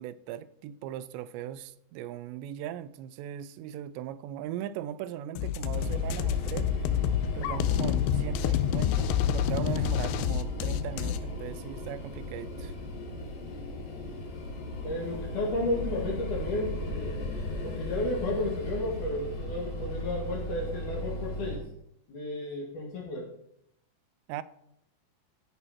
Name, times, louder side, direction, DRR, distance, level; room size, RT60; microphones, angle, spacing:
voice 1, 0.0-6.7 7.3-12.7 24.3-24.4, right 11 dB, 90° right, 2.8 m, -39 dB
sound 1, 5.4-11.2, left 11 dB, 90° left, 2.9 m, -28 dB
sound 2, 5.7-21.6, left 1 dB, 70° left, 4.4 m, -36 dB
voice 2, 14.8-21.6 22.1-23.3, left 1 dB, 55° left, 3.2 m, -33 dB
15.0 x 7.0 x 4.3 m
omnidirectional pair, 5.0 m